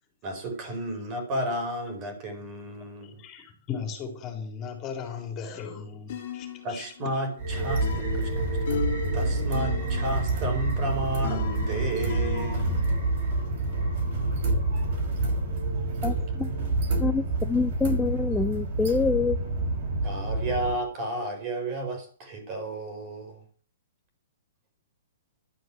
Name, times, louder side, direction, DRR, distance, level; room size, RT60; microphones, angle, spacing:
voice 1, 0.2-3.2 6.6-8.6 9.1-12.7 20.0-23.4, right 1 dB, 30° right, 5 dB, 4.9 m, -32 dB
voice 2, 3.0-6.8, left 6 dB, 25° left, 4 dB, 3.8 m, -37 dB
sound 1, 6.1-12.9, left 10 dB, 55° left, 2.0 m, -38 dB
sound 2, 7.4-20.7, right 2 dB, 50° right, 5.7 m, -27 dB
voice 3, 16.0-16.5 17.0-19.6, left 4 dB, 10° left, 9 dB, 0.6 m, -26 dB
12.5 x 8.0 x 7.8 m, 0.43 s
hypercardioid pair, 150°, 0 cm